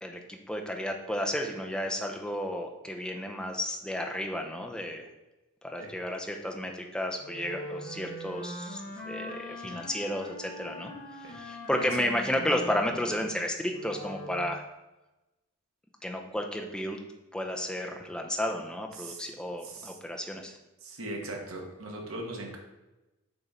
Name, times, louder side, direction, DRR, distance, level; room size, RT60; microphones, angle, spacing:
voice 1, 0.0-5.0 5.6-8.8 9.1-10.9 11.2-14.6 16.0-17.0 17.3-20.6, left 1 dB, 5° left, 2 dB, 0.6 m, -32 dB
Wind instrument woodwind instrument, 7.2-14.6, left 1 dB, 40° left, 1.5 m, -42 dB
voice 2, 19.6-20.0 20.8-22.6, right 1 dB, 80° right, 0 dB, 1.3 m, -39 dB
6.8 x 3.6 x 4.2 m, 1.0 s
head